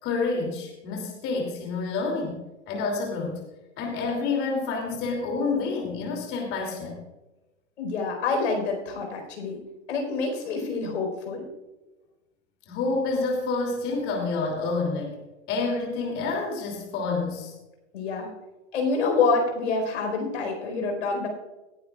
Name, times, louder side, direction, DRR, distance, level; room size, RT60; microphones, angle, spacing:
voice 1, 0.0-3.4 3.8-7.0 12.7-15.1 15.5-17.5, left 3 dB, 35° left, 0 dB, 2.8 m, -28 dB
voice 2, 7.8-9.6 9.9-11.5 17.9-18.3 18.7-21.3, left 4 dB, 75° left, 3 dB, 4.5 m, -27 dB
18.5 x 11.5 x 2.4 m, 1.1 s
hypercardioid pair, 125°, 36 cm